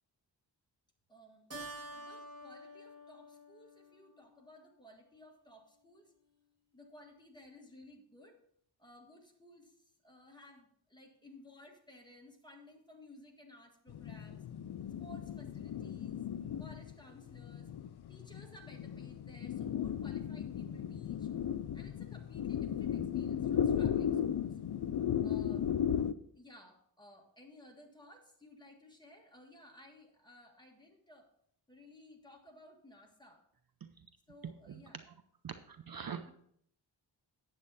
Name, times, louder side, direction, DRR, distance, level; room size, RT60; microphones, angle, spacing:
voice 1, 1.1-1.5 1.9-6.1 6.7-8.4 8.8-14.4 15.0-16.2 16.6-17.7 18.1-21.3 21.7-24.6 25.2-25.7 26.3-31.3 31.7-33.4 34.3-35.0, left 1 dB, 10° left, 1 dB, 1.7 m, -57 dB
Keyboard (musical), 1.5-4.4, right 1 dB, 35° right, 1.8 m, -49 dB
sound 1, 13.9-26.1, left 9 dB, 60° left, 0.5 m, -36 dB
voice 2, 34.4-34.8 35.4-36.3, right 7 dB, 50° right, 8 dB, 0.7 m, -44 dB
9.5 x 7.6 x 4.1 m, 0.67 s
wide cardioid pair, 95°, 44 cm